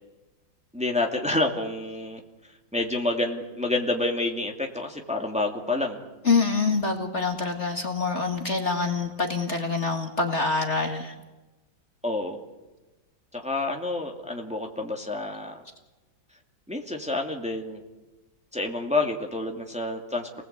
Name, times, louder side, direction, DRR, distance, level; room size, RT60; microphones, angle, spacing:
voice 1, 0.7-2.2 2.7-6.0 12.0-12.4 13.3-15.6 16.7-17.8 18.5-20.4, left 2 dB, 5° right, 2 dB, 2.3 m, -28 dB
voice 2, 6.2-11.1, left 4 dB, 40° left, 4 dB, 2.0 m, -25 dB
29.0 x 19.5 x 8.2 m, 1.1 s
omnidirectional pair, 2.0 m